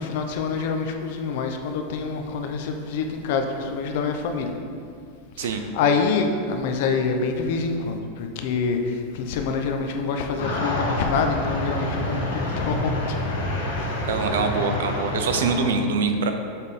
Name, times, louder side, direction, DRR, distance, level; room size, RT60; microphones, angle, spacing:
voice 1, 0.0-4.5 5.4-13.2 13.8-14.2, left 4 dB, 60° left, 4 dB, 0.6 m, -26 dB
sound 1, 10.4-15.7, left 2 dB, 90° left, 1.4 m, -27 dB
voice 2, 14.1-16.3, right 4 dB, 85° right, 6 dB, 0.6 m, -24 dB
7.1 x 3.6 x 4.1 m, 2.4 s
supercardioid pair, 155°, 0 cm